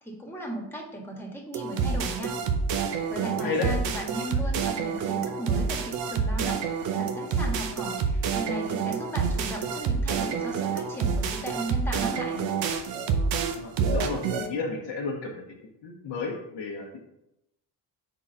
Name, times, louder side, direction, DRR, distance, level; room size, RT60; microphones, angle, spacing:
voice 1, 0.0-2.4 3.1-6.6 7.0-12.5, right 1 dB, 5° left, 0 dB, 1.4 m, -36 dB
sound 1, 1.5-14.5, right 5 dB, 90° right, 0.8 m, -28 dB
voice 2, 3.3-3.7 13.5-15.4 15.8-17.0, left 4 dB, 80° left, -2 dB, 1.0 m, -32 dB
4.6 x 3.8 x 5.4 m, 0.87 s
cardioid pair, 115°, 42 cm